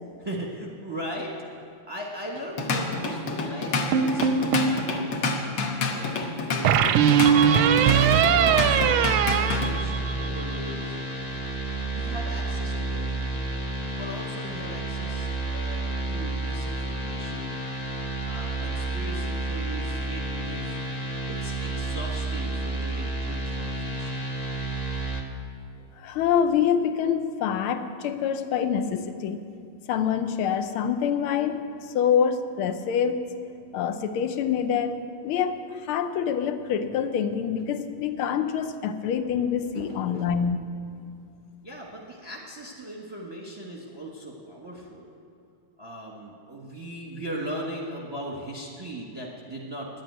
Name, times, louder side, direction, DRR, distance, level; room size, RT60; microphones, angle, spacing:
voice 1, 0.2-1.3 1.9-7.7 8.3-11.4 11.9-13.5 13.8-17.6 18.3-20.8 21.2-24.3 39.7-40.7 41.6-45.1 45.8-49.9, right 1 dB, 15° right, -2 dB, 1.0 m, -38 dB
Drum kit / Drum, 2.4-9.7, left 4 dB, 60° left, 1.6 m, -29 dB
sound 1, 3.9-4.8 6.7-10.4, right 8 dB, 85° right, 1.5 m, -20 dB
sound 2, 8.1-25.2, right 2 dB, 40° left, 0.5 m, -30 dB
voice 2, 26.0-29.4 29.9-33.2 33.7-35.0 35.2-40.7, left 8 dB, 80° left, 9 dB, 1.6 m, -26 dB
10.5 x 8.9 x 9.3 m, 2.5 s
omnidirectional pair, 2.3 m